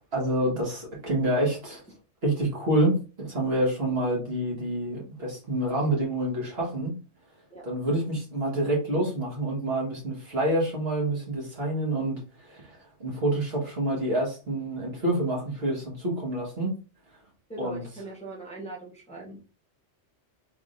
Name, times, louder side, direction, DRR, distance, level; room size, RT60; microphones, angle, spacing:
voice 1, 0.0-1.8 2.2-7.0 7.6-16.8 17.6-17.8, right 1 dB, 55° right, -3 dB, 1.6 m, -27 dB
voice 2, 17.5-19.4, right 2 dB, 5° left, -4 dB, 0.9 m, -40 dB
3.5 x 3.4 x 2.5 m, 0.34 s
omnidirectional pair, 1.2 m